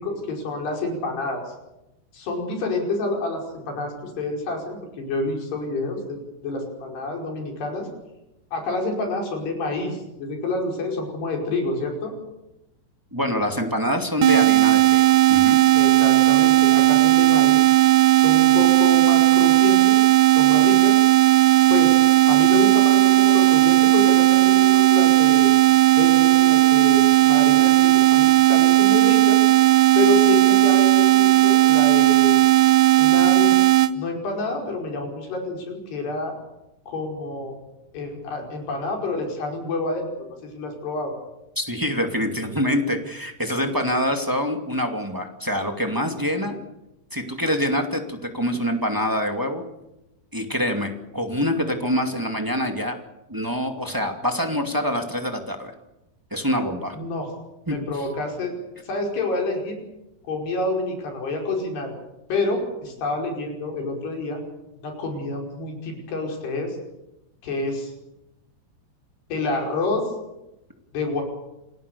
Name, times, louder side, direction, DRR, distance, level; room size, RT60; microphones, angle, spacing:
voice 1, 0.0-1.5 2.1-3.4 3.7-7.9 8.5-12.1 15.8-17.7 18.2-20.0 20.3-21.0 21.7-25.6 26.0-27.0 27.3-29.4 30.0-32.4 33.0-33.5 33.9-36.3 36.9-37.6 37.9-41.1 56.9-57.3 57.7-58.5 58.9-59.8 60.3-61.9 62.3-64.4 64.8-66.8 67.4-67.9 69.3-70.0 70.9-71.2, left 2 dB, 80° left, 2 dB, 7.3 m, -28 dB
voice 2, 13.1-15.6 41.5-46.6 47.1-49.6 50.3-52.9 53.3-55.7 56.3-57.0 57.7-58.1, equal, 10° right, 4 dB, 1.2 m, -25 dB
sound 1, 14.2-33.9, right 16 dB, 75° right, 1.7 m, -16 dB
28.0 x 18.5 x 7.0 m, 0.91 s
omnidirectional pair, 4.7 m